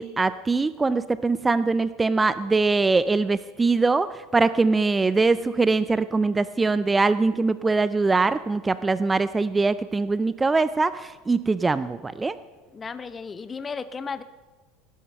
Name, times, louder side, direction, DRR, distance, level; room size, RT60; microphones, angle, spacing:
voice 1, 0.0-12.4, right 3 dB, 15° right, 15 dB, 0.4 m, -22 dB
voice 2, 12.7-14.2, left 5 dB, 25° left, 13 dB, 0.9 m, -34 dB
18.5 x 10.0 x 5.5 m, 1.3 s
hypercardioid pair, 75°, 0 cm